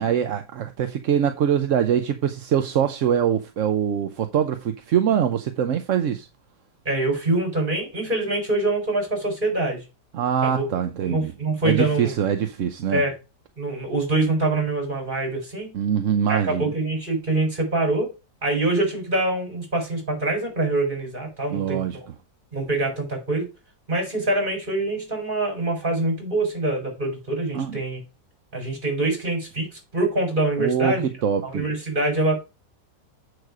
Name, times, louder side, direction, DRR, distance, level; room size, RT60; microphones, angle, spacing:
voice 1, 0.0-6.3 10.1-11.3 11.6-13.0 15.7-16.7 21.5-22.0 27.5-27.8 30.6-31.6, right 8 dB, 60° right, 1.0 m, -23 dB
voice 2, 6.8-9.8 10.4-10.6 11.0-12.1 12.9-13.1 13.6-15.7 16.3-18.1 18.4-22.1 22.5-23.5 23.9-28.0 28.5-31.0 31.4-32.3, right 2 dB, 30° right, 4.9 m, -24 dB
7.8 x 6.6 x 4.8 m
omnidirectional pair, 1.8 m